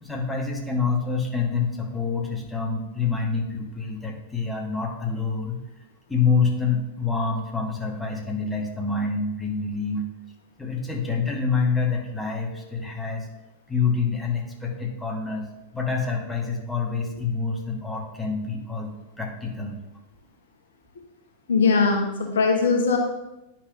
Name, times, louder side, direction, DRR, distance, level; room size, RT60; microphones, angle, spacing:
voice 1, 0.0-5.6 6.1-10.0 10.6-13.3 13.7-15.5 15.7-19.8, left 5 dB, 5° left, 0 dB, 1.2 m, -27 dB
voice 2, 21.5-23.0, left 4 dB, 65° left, 2 dB, 1.0 m, -20 dB
10.0 x 5.8 x 2.4 m, 0.95 s
figure-of-eight pair, 90°, 0 cm